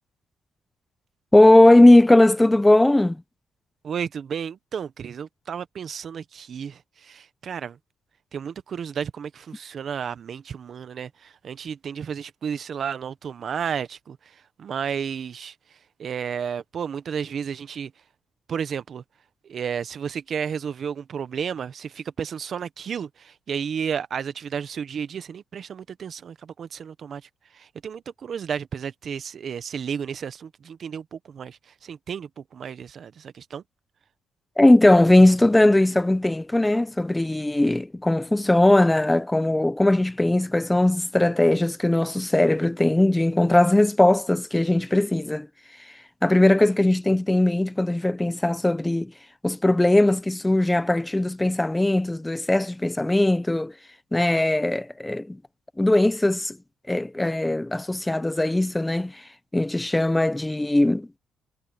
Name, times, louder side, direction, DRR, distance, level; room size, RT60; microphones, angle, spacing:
voice 1, 1.3-3.2 34.6-45.5 46.2-49.1 49.4-53.7 54.1-55.4 55.8-56.6 56.9-59.2 59.5-61.1, left 1 dB, 10° left, 0.8 m, -19 dB
voice 2, 3.8-7.8 8.3-17.9 18.5-19.0 19.4-33.6, right 7 dB, 55° right, 1.2 m, -32 dB
cardioid pair, 90°, 0 cm